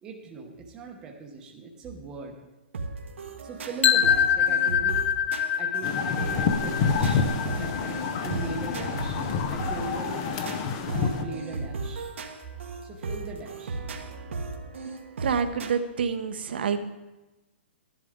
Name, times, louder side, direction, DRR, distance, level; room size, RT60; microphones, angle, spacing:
voice 1, 0.0-2.3 3.4-5.0 5.6-7.3 7.6-10.5 10.9-12.1 12.8-13.8 14.2-14.3, right 4 dB, 10° right, -1 dB, 0.8 m, -40 dB
sound 1, 2.7-15.7, right 3 dB, 90° right, 1.4 m, -36 dB
sound 2, 3.8-9.7, left 8 dB, 70° left, 0.6 m, -26 dB
sound 3, 5.8-11.3, left 5 dB, 25° left, 0.5 m, -28 dB
voice 2, 15.2-16.8, right 6 dB, 55° right, 9 dB, 0.9 m, -27 dB
12.5 x 11.0 x 3.6 m, 1.1 s
hypercardioid pair, 180°, 7 cm